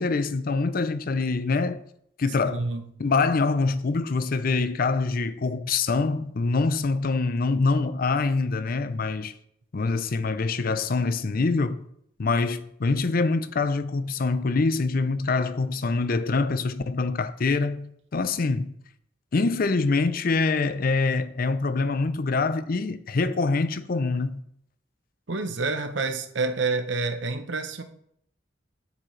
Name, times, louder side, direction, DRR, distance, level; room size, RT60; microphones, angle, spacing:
voice 1, 0.0-1.8 2.2-2.6 3.0-9.3 9.7-11.8 12.2-18.7 19.3-24.4, left 3 dB, 50° left, 0.5 m, -25 dB
voice 2, 2.5-2.9 25.3-27.8, right 3 dB, 80° right, 0.9 m, -28 dB
8.9 x 7.9 x 3.2 m
head